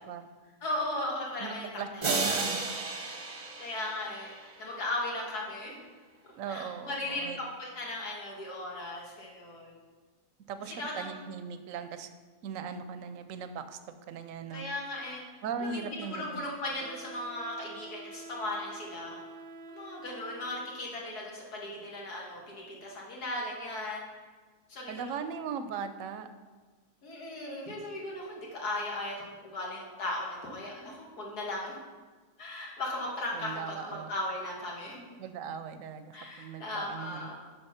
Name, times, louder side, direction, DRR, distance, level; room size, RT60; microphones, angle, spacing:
voice 1, 0.6-2.4 3.1-3.2 3.6-5.8 6.5-9.8 10.7-11.2 14.5-15.2 15.6-19.2 19.7-24.0 24.7-25.1 27.0-31.8 32.4-35.0 36.1-37.3, left 1 dB, 85° left, -2 dB, 2.1 m, -37 dB
voice 2, 1.4-2.6 6.4-7.4 10.5-12.1 12.4-13.8 14.1-14.7 15.4-16.5 24.9-26.3 33.3-34.1 35.2-37.3, right 6 dB, 70° right, 10 dB, 0.9 m, -39 dB
sound 1, 2.0-4.9, right 3 dB, 40° right, 0.7 m, -33 dB
Wind instrument woodwind instrument, 16.8-20.9, right 2 dB, 90° right, 1.3 m, -48 dB
7.1 x 5.6 x 5.6 m, 1.4 s
omnidirectional pair, 1.6 m